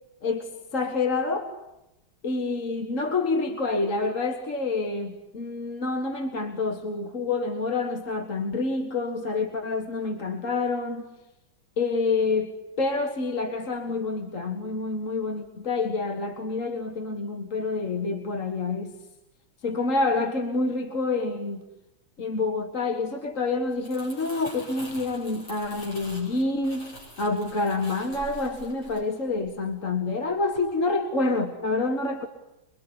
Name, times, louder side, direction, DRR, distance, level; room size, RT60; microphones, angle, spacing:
voice 1, 0.2-1.5 2.2-11.1 11.8-18.9 19.6-21.6 22.2-32.3, left 3 dB, 40° left, 5 dB, 2.0 m, -27 dB
Crumpling crinkling, 23.6-29.9 30.3-30.6, equal, 85° left, 8.9 m, -45 dB
26.0 x 23.5 x 9.8 m, 0.91 s
omnidirectional pair, 2.2 m